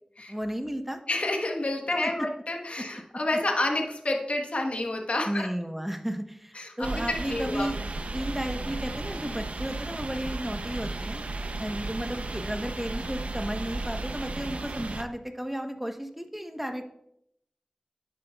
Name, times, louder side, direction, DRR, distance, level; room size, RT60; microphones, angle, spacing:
voice 1, 0.3-1.0 2.0-2.1 5.3-7.8 8.1-11.2 11.6-16.9, equal, 5° right, 6 dB, 1.0 m, -33 dB
voice 2, 1.1-5.5 6.5-7.7, left 2 dB, 65° left, 2 dB, 1.2 m, -29 dB
sound 1, 6.8-15.0, right 2 dB, 80° right, 0.6 m, -34 dB
10.5 x 8.2 x 2.3 m, 0.75 s
wide cardioid pair, 45°, 2 cm